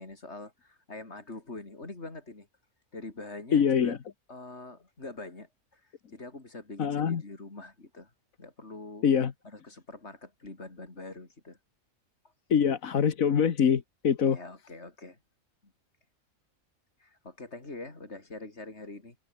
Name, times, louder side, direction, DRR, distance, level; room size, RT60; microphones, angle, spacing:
voice 1, 0.0-2.5 2.9-4.0 4.3-5.8 6.1-8.1 8.4-9.1 9.4-11.6 14.2-15.2 15.6-15.7 17.0-19.2, left 2 dB, 55° left, 4.3 m, -44 dB
voice 2, 3.5-4.0 6.8-7.2 9.0-9.3 12.5-14.4, left 7 dB, 90° left, 1.8 m, -24 dB
omnidirectional pair, 1.4 m